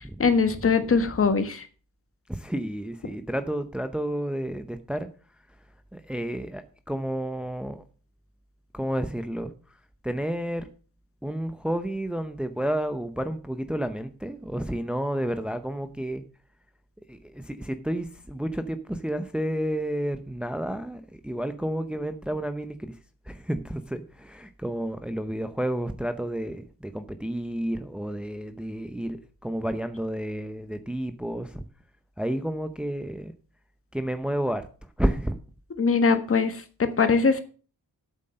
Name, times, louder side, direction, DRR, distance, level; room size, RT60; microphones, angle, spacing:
voice 1, 0.0-1.7 35.8-37.4, left 5 dB, 40° left, 9 dB, 1.4 m, -22 dB
voice 2, 2.3-5.1 5.9-7.8 8.7-9.5 10.0-10.7 11.2-16.2 17.1-23.0 23.3-31.6 32.2-33.3 33.9-34.6 35.0-35.4, right 1 dB, 5° right, 9 dB, 0.7 m, -31 dB
8.4 x 7.5 x 6.6 m, 0.39 s
wide cardioid pair, 120°, 35 cm